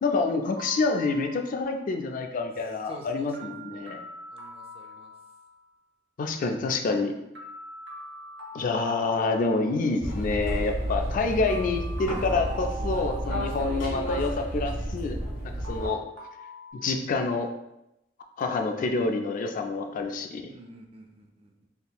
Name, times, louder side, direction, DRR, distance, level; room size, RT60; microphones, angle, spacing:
voice 1, 0.0-4.0 6.2-7.2 8.5-15.2 15.4-16.0 16.7-17.5 18.4-20.5, left 3 dB, 45° left, 5 dB, 0.3 m, -27 dB
sound 1, 0.6-1.7 3.3-5.6 7.3-9.7 11.5-13.8 15.6-16.7, right 2 dB, 65° right, 0.7 m, -44 dB
voice 2, 2.9-4.0 4.3-5.1 20.5-21.7, right 2 dB, 30° right, 3 dB, 0.4 m, -49 dB
sound 2, 10.0-15.9, equal, 85° left, 1.5 m, -31 dB
3.6 x 2.7 x 2.2 m, 0.88 s
head